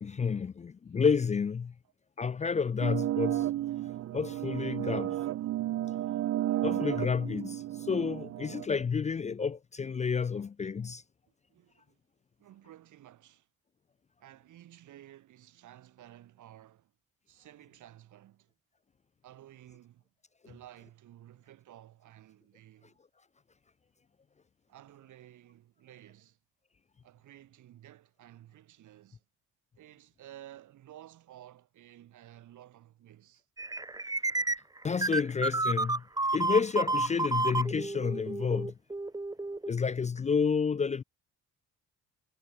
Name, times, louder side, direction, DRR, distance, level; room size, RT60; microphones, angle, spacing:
voice 1, 0.0-1.7 2.2-3.5 4.1-5.2 6.6-11.0 34.8-36.0 36.3-38.7 39.7-41.0, left 5 dB, 25° left, 0.4 m, -30 dB
sound 1, 2.8-8.7, right 13 dB, 55° right, 0.5 m, -32 dB
voice 2, 11.3-12.0 12.4-13.5 14.2-16.9 17.3-18.5 19.2-20.1 20.4-23.0 24.7-26.4 27.0-29.2 29.8-33.5, right 13 dB, 75° right, 5.9 m, -54 dB
sound 2, 33.6-39.7, right 2 dB, 10° right, 1.1 m, -31 dB
cardioid pair, 90°, 30 cm